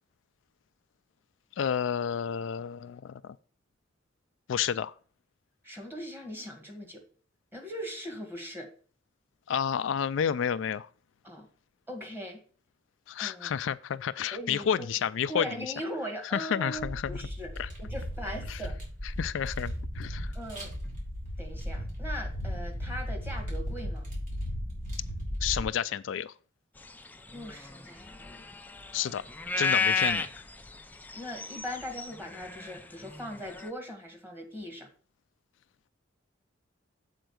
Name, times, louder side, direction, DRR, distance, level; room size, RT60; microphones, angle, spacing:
voice 1, 1.6-3.4 4.5-4.9 9.5-10.9 13.1-15.5 16.3-17.2 17.6-17.7 18.5-18.6 19.2-20.3 25.4-26.3 28.9-29.2 29.6-30.3, left 8 dB, 70° left, 0.3 m, -30 dB
voice 2, 5.6-7.0 7.5-8.7 11.2-11.5 11.9-12.4 13.2-13.5 14.3-14.9 15.3-18.8 20.3-20.7 21.4-24.1 27.3-28.4 31.1-34.9, equal, 10° right, 2.0 m, -40 dB
sound 1, 16.7-25.6, equal, 45° right, 3.6 m, -36 dB
sound 2, 26.9-33.7, left 4 dB, 10° left, 0.5 m, -33 dB
7.9 x 4.5 x 6.2 m
head